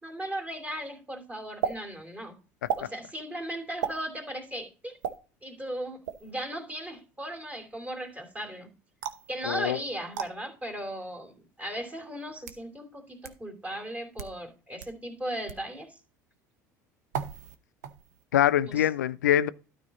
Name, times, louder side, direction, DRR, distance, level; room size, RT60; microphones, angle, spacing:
voice 1, 0.0-2.4 2.8-4.9 5.4-8.7 9.3-16.0 18.7-18.9, right 1 dB, 15° right, 2.8 m, -37 dB
sound 1, 1.6-1.8 2.7-2.9 3.8-4.0 5.0-5.2 6.0-6.3 9.0-9.3 10.1-10.3 11.2-11.3 12.2-12.6 13.2-13.3 14.0-14.4 14.8-14.9 15.5-15.7 17.1-17.6 17.8-18.2, right 8 dB, 75° right, 0.9 m, -33 dB
voice 2, 9.4-9.8 18.3-19.5, left 11 dB, 80° left, 0.5 m, -24 dB
12.5 x 4.8 x 4.0 m
hypercardioid pair, 70°, 9 cm